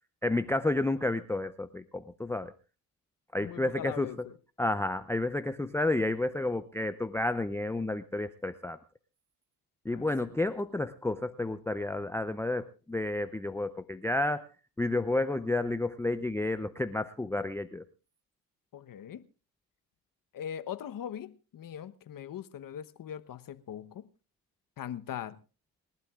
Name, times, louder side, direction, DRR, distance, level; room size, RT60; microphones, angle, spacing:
voice 1, 0.2-2.5 3.3-4.3 4.6-8.8 9.8-14.5 14.8-17.8, left 2 dB, 5° left, 0.6 m, -31 dB
voice 2, 3.4-4.4 9.9-10.1 18.7-19.3 20.3-24.1 24.8-25.4, left 9 dB, 45° left, 1.1 m, -41 dB
28.0 x 12.0 x 2.5 m
supercardioid pair, 75°, 46 cm